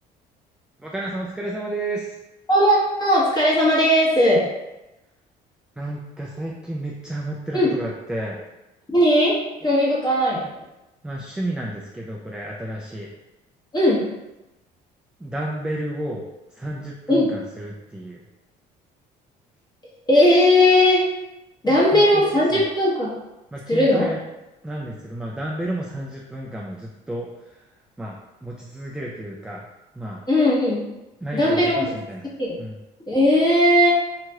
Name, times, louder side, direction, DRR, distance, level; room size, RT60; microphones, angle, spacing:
voice 1, 0.8-2.2 5.8-8.4 11.0-13.1 15.2-16.2 16.5-18.2 21.7-22.6 23.5-24.2 24.6-27.6 28.0-29.6 30.0-30.2 31.2-32.2 32.6-32.8, right 1 dB, 5° right, -3 dB, 0.4 m, -31 dB
voice 2, 2.5-4.4 7.5-7.7 8.9-10.4 13.7-14.0 17.1-17.3 20.1-21.1 21.6-23.1 23.7-24.0 30.3-30.9 31.3-31.9 32.4-32.6 33.1-33.9, left 1 dB, 20° left, -5 dB, 1.2 m, -18 dB
2.9 x 2.8 x 2.3 m, 0.98 s
supercardioid pair, 85°, 18 cm